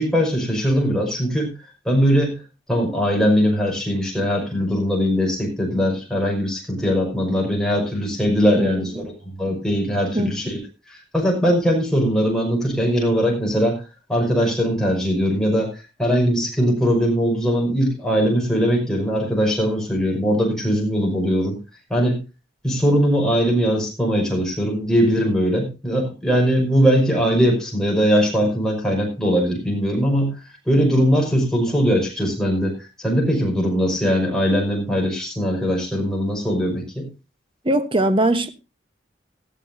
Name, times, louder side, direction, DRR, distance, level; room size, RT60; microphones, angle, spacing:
voice 1, 0.0-1.5 1.8-2.4 2.7-9.1 9.4-10.6 10.9-13.8 14.1-21.6 21.9-22.2 22.6-30.3 30.7-37.1, equal, 5° left, 5.6 m, -20 dB
voice 2, 8.6-9.1 10.1-10.5 37.6-38.5, right 1 dB, 25° right, 1.1 m, -21 dB
18.5 x 13.0 x 2.7 m
head